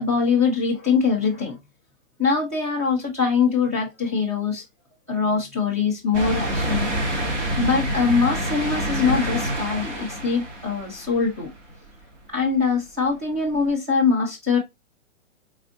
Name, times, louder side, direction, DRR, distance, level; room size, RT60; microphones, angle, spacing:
voice 1, 0.0-1.6 2.2-4.6 5.1-6.9 7.6-11.5 12.3-14.6, left 5 dB, 10° right, 0.4 m, -23 dB
sound 1, 6.1-11.7 12.2-12.3 13.6-13.7, right 1 dB, 60° right, 2.1 m, -27 dB
4.1 x 2.6 x 3.7 m
hypercardioid pair, 170°, 40 cm